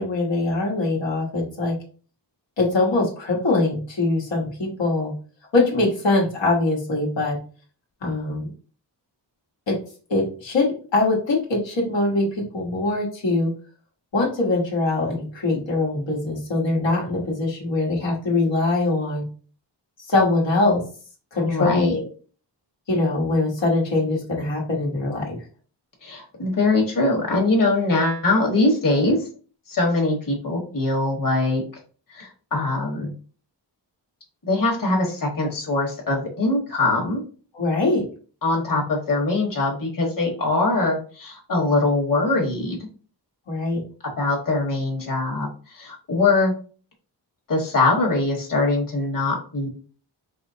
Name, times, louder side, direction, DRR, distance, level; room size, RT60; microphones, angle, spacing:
voice 1, 0.0-1.8 2.6-5.1 5.5-7.4 8.0-8.5 9.7-9.8 10.1-13.5 14.1-19.2 20.1-20.8 21.3-22.1 22.9-25.4 37.5-38.1 43.5-43.8, left 2 dB, 85° left, -3 dB, 1.3 m, -22 dB
voice 2, 21.3-21.9 26.0-29.2 29.7-31.6 32.1-33.1 34.4-37.2 38.4-42.9 44.2-45.5 45.7-46.5 47.5-49.7, left 2 dB, 50° left, 0 dB, 1.2 m, -22 dB
4.9 x 2.9 x 2.7 m, 0.39 s
wide cardioid pair, 110°, 43 cm